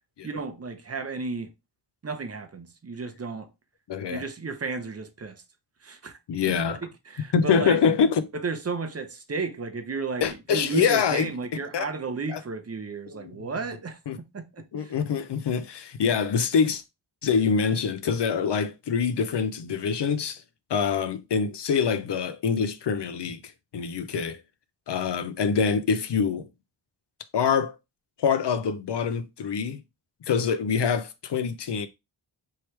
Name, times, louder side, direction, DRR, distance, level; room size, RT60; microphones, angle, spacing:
voice 1, 0.2-1.5 2.0-3.5 4.1-5.4 5.8-6.2 6.5-6.8 7.1-7.8 8.3-14.0 14.3-14.9, right 4 dB, 35° right, 0.7 m, -33 dB
voice 2, 3.9-4.3 6.3-6.8 7.3-8.3 10.2-11.3 11.7-11.9 12.3-12.4 13.1-13.5 14.1-14.2 14.7-16.8 17.2-20.4 20.7-23.4 23.7-24.4 24.9-26.5 27.3-27.8 28.2-29.8 30.3-31.9, left 6 dB, 65° left, 0.6 m, -25 dB
4.6 x 3.1 x 3.2 m
wide cardioid pair, 140°, 44 cm